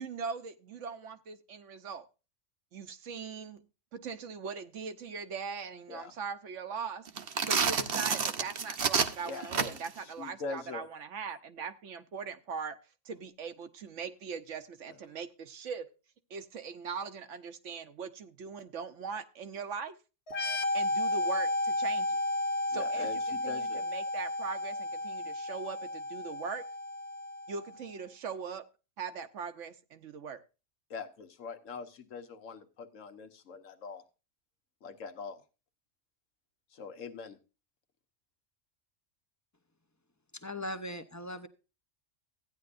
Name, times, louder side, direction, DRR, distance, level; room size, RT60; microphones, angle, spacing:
voice 1, 0.0-2.0 2.7-3.6 3.9-7.1 7.5-12.8 13.0-15.9 16.3-20.0 20.7-22.2 22.7-26.6 27.5-28.7 29.0-30.4, right 6 dB, 70° right, 1.2 m, -40 dB
sound 1, 7.1-10.0, right 6 dB, 50° right, 0.9 m, -29 dB
voice 2, 9.2-9.7 10.2-10.8 22.7-23.8 30.9-34.0 34.8-35.4 36.7-37.4, left 5 dB, 80° left, 1.4 m, -42 dB
sound 2, 20.3-27.8, left 2 dB, 55° left, 1.2 m, -33 dB
voice 3, 40.3-41.5, left 1 dB, 20° left, 0.6 m, -39 dB
15.0 x 9.7 x 2.5 m
omnidirectional pair, 1.3 m